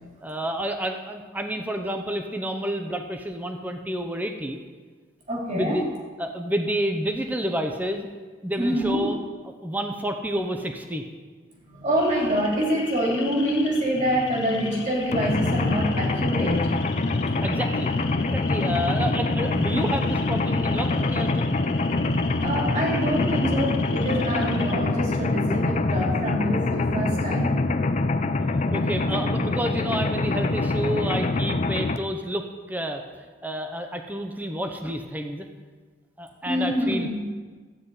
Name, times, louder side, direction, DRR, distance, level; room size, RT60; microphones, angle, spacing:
voice 1, 0.2-4.6 5.5-5.9 6.2-8.1 8.4-9.2 9.4-11.0 17.4-17.9 18.2-21.5 28.5-33.0 33.4-35.5 36.2-37.1, equal, 10° right, 4 dB, 0.8 m, -29 dB
voice 2, 5.3-5.8 8.6-9.0 11.7-16.7 22.4-27.5 36.5-37.2, equal, 40° right, -3 dB, 2.9 m, -26 dB
sound 1, 12.0-24.7, left 5 dB, 70° left, 1.7 m, -40 dB
Mechanisms, 15.1-32.0, left 2 dB, 40° left, 0.5 m, -25 dB
14.5 x 9.4 x 4.1 m, 1.5 s
head